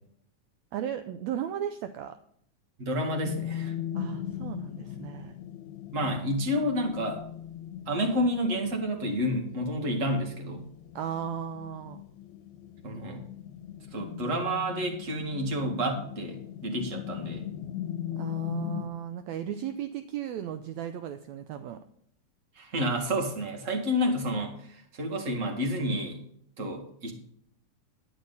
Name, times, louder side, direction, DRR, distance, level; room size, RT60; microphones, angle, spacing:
voice 1, 0.7-2.2 4.0-5.4 11.0-12.0 18.2-21.8, right 9 dB, 75° right, 9 dB, 1.7 m, -35 dB
voice 2, 2.8-3.7 5.9-7.2 7.9-10.7 12.8-13.3 13.9-17.4 22.6-24.5 25.0-26.2 26.6-27.1, equal, 30° right, 3 dB, 1.9 m, -29 dB
sound 1, 3.2-18.9, left 11 dB, 75° left, 2.3 m, -39 dB
11.5 x 9.9 x 4.0 m, 0.67 s
omnidirectional pair, 3.5 m